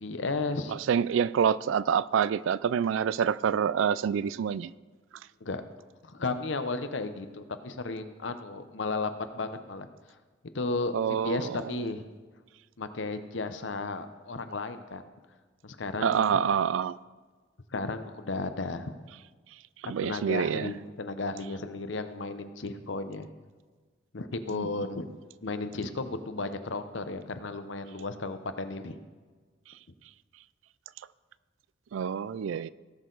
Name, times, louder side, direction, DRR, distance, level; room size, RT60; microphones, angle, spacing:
voice 1, 0.0-0.7 5.4-5.6 6.0-9.9 10.5-11.0 11.2-12.1 12.8-15.0 15.6-16.3 17.7-18.9 20.0-23.3 24.1-25.1 25.4-29.0, left 3 dB, 75° left, 0.8 m, -34 dB
voice 2, 0.7-4.7 10.9-11.9 16.0-17.0 19.8-20.7 24.5-24.7 31.9-32.7, right 7 dB, 85° right, 0.3 m, -27 dB
17.5 x 6.5 x 4.0 m
head